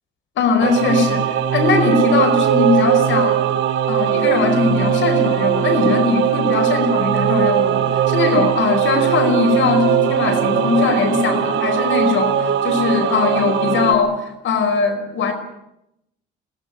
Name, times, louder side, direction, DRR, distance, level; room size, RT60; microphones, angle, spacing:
voice 1, 0.4-3.5 3.9-15.3, left 5 dB, 75° left, 9 dB, 5.0 m, -20 dB
Singing / Musical instrument, 0.6-13.9, right 9 dB, 70° right, 3.2 m, -19 dB
21.5 x 18.5 x 9.8 m, 0.83 s
cardioid pair, 90°, 20 cm